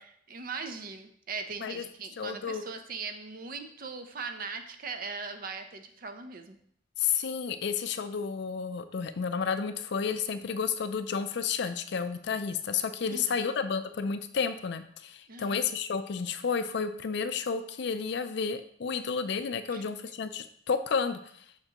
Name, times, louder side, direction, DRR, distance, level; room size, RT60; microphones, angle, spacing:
voice 1, 0.0-6.6 13.0-13.5 15.3-15.7 19.7-19.8, right 4 dB, 50° right, 7 dB, 0.7 m, -40 dB
voice 2, 2.2-2.6 7.0-21.2, left 6 dB, 60° left, 10 dB, 0.4 m, -31 dB
6.6 x 5.8 x 3.0 m, 0.65 s
head